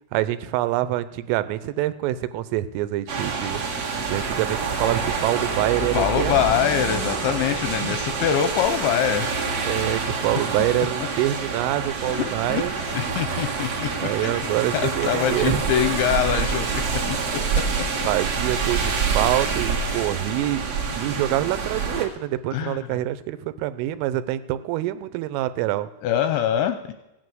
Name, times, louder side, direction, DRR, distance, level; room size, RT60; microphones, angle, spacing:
voice 1, 0.1-3.6 4.1-6.6 7.8-7.9 9.6-12.7 14.0-15.6 18.0-25.9, right 14 dB, 90° right, 13 dB, 3.3 m, -26 dB
sound 1, 3.1-22.1, right 5 dB, 55° right, 1.9 m, -27 dB
voice 2, 5.8-9.3 12.1-14.4 15.0-17.8 22.5-22.8 26.0-26.9, left 10 dB, 85° left, 9 dB, 2.7 m, -24 dB
16.5 x 9.1 x 7.8 m, 0.94 s
omnidirectional pair, 5.8 m